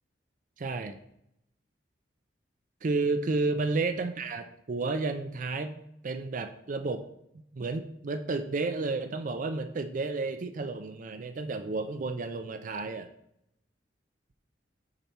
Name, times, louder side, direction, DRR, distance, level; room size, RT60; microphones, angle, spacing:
voice 1, 0.6-1.0 2.8-7.0 7.5-13.1, right 3 dB, 45° right, 8 dB, 0.4 m, -31 dB
6.8 x 4.4 x 4.1 m, 0.76 s
head